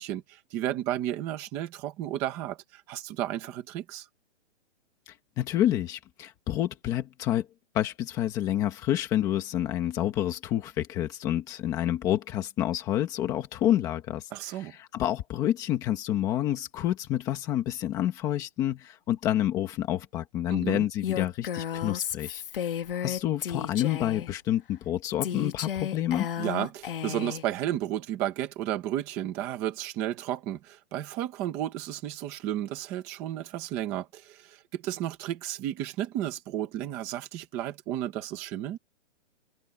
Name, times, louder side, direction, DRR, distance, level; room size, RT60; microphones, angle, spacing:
voice 1, 0.0-4.1 14.3-14.7 20.5-20.9 26.4-38.8, right 12 dB, 5° right, 0.8 m, -33 dB
voice 2, 5.1-7.5 7.7-14.3 14.6-22.7 23.0-26.3, left 12 dB, 10° left, 1.4 m, -28 dB
Female speech woman speaking, 21.0-24.3 25.2-27.4, left 9 dB, 45° left, 2.1 m, -33 dB
hypercardioid pair, 180°, 37 cm